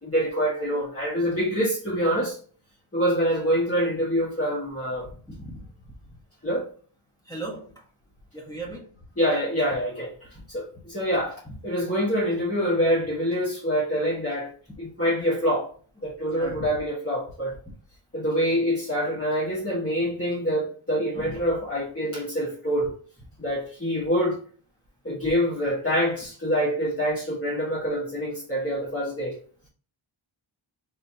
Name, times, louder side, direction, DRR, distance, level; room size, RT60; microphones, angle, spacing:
voice 1, 0.0-2.4 2.9-5.1 6.4-6.7 9.2-10.1 10.5-14.5 14.8-15.7 16.0-17.5 18.1-22.9 23.4-24.4 25.0-29.3, equal, 25° left, 1.5 m, -25 dB
voice 2, 5.3-5.7 7.3-7.8 8.3-8.9 10.3-10.4 16.3-16.7, right 2 dB, 5° left, 1.2 m, -36 dB
4.1 x 3.7 x 2.8 m
wide cardioid pair, 100°, 50 cm